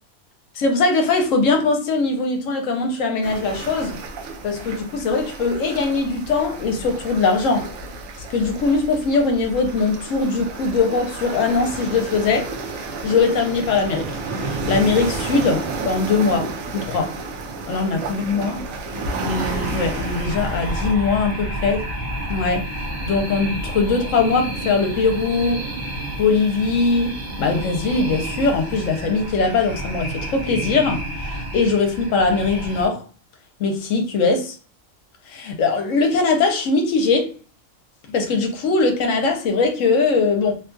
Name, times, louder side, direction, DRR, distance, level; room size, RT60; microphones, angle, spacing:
voice 1, 0.5-4.0 4.4-7.7 8.3-12.5 12.8-14.1 14.4-17.2 17.7-18.7 19.2-21.9 22.3-25.6 26.2-33.0 33.6-34.6 35.3-37.3 38.1-40.6, left 4 dB, 75° left, 1.0 m, -21 dB
sound 1, 3.2-20.9, right 3 dB, 80° right, 1.0 m, -31 dB
sound 2, 19.2-32.9, right 1 dB, 45° right, 0.7 m, -30 dB
2.8 x 2.3 x 2.5 m
omnidirectional pair, 1.4 m